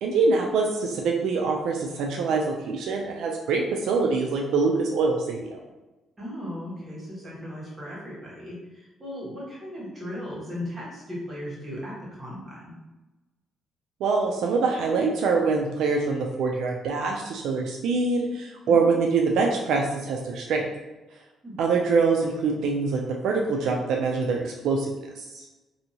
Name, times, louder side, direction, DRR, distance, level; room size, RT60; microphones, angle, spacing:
voice 1, 0.0-5.6 14.0-20.6 21.6-24.9 25.2-25.4, right 4 dB, 80° right, 1 dB, 0.3 m, -24 dB
voice 2, 6.2-12.7 18.6-18.9 21.4-21.5, left 1 dB, 25° right, -7 dB, 1.5 m, -37 dB
2.7 x 2.6 x 2.7 m, 1.1 s
cardioid pair, 90°, 0 cm